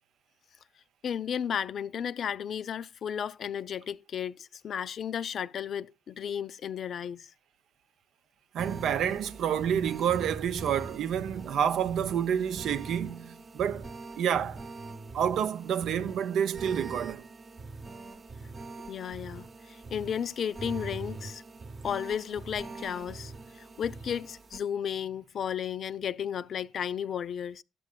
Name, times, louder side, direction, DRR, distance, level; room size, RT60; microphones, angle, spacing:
voice 1, 1.0-7.3 18.9-21.4 21.8-27.6, left 8 dB, 60° left, 0.4 m, -34 dB
voice 2, 8.5-13.9 14.2-14.6 15.1-17.2, right 9 dB, 75° right, 0.6 m, -29 dB
sound 1, 8.6-24.6, right 3 dB, 40° right, 0.9 m, -43 dB
12.0 x 7.6 x 2.2 m
cardioid pair, 90°, 0 cm